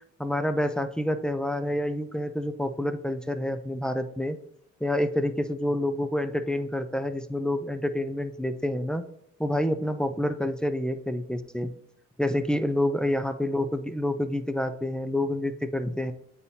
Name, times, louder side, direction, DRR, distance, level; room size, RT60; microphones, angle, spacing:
voice 1, 0.2-4.4 4.8-9.0 9.4-11.7 12.2-16.1, left 1 dB, 5° left, 8 dB, 0.4 m, -28 dB
8.4 x 4.1 x 2.8 m, 0.71 s
cardioid pair, 90°, 30 cm